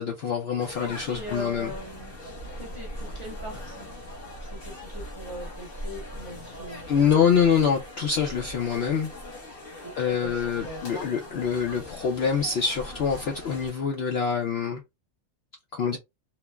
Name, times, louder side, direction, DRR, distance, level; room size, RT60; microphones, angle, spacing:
voice 1, 0.0-1.7 6.9-9.1 10.0-14.8 15.7-16.0, left 7 dB, 65° left, 0.6 m, -25 dB
sound 1, 0.6-13.7, equal, 45° left, 1.0 m, -40 dB
voice 2, 0.8-2.2 2.6-3.9 4.4-7.7 9.8-11.1, left 1 dB, 25° right, 0.8 m, -40 dB
3.0 x 2.1 x 2.2 m
omnidirectional pair, 1.5 m